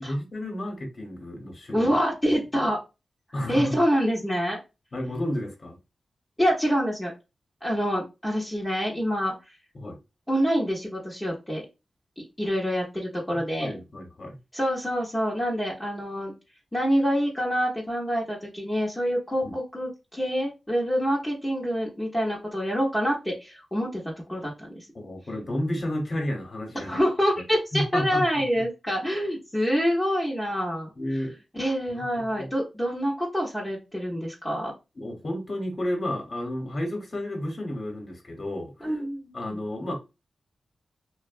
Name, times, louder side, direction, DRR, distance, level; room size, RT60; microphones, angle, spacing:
voice 1, 0.0-1.9 3.3-3.8 4.9-5.8 9.7-10.0 13.6-14.4 19.4-19.5 24.9-27.0 27.7-28.4 31.0-31.4 31.9-32.0 32.4-32.5 35.0-38.9 39.3-39.9, left 1 dB, 55° left, 1.0 m, -31 dB
voice 2, 1.7-2.8 3.5-4.6 6.4-7.1 7.6-9.5 10.3-11.7 12.2-13.7 14.5-16.3 16.7-24.9 26.7-30.9 31.5-34.7 38.8-39.6, equal, 15° left, 0.9 m, -26 dB
2.6 x 2.2 x 2.5 m
cardioid pair, 65°, 0 cm